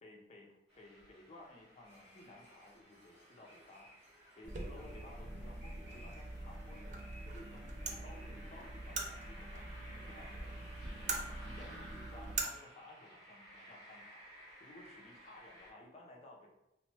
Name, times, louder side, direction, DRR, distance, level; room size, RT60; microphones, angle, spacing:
voice 1, 0.0-3.9 4.4-7.7 8.0-14.2 14.6-16.5, left 1 dB, 35° left, 0 dB, 0.5 m, -57 dB
sound 1, 0.7-15.7, equal, 65° right, 1.3 m, -57 dB
sound 2, 1.8-11.4, equal, 15° right, 0.7 m, -61 dB
sound 3, 4.4-12.4, right 3 dB, 40° right, 0.4 m, -43 dB
2.9 x 2.0 x 3.1 m, 0.87 s
head